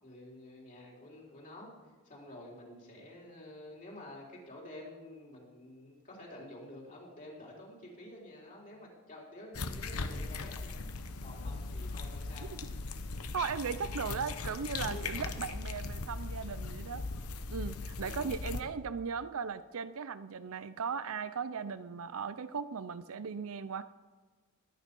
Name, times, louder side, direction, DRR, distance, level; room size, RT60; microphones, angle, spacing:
voice 1, 0.0-10.8 11.2-12.5 14.9-15.0 15.3-15.4 18.0-18.3, left 1 dB, 40° left, -2 dB, 4.0 m, -50 dB
sound 1, 9.5-18.6, left 3 dB, 75° left, 1.0 m, -39 dB
voice 2, 13.3-17.0 17.5-23.8, right 6 dB, 65° right, 13 dB, 0.6 m, -37 dB
21.0 x 10.0 x 5.4 m, 1.3 s
head